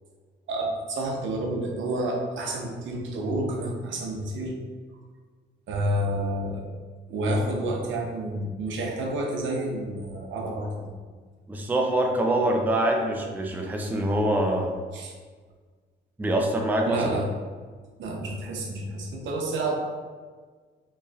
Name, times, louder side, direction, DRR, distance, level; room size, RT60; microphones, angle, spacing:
voice 1, 0.5-4.6 5.7-6.7 7.1-10.9 14.9-15.1 16.8-17.3 18.0-19.8, right 1 dB, 75° right, 1 dB, 0.8 m, -29 dB
voice 2, 11.5-14.8 16.2-17.2, right 1 dB, 10° right, 1 dB, 0.4 m, -24 dB
4.1 x 3.1 x 2.4 m, 1.5 s
cardioid pair, 90°, 20 cm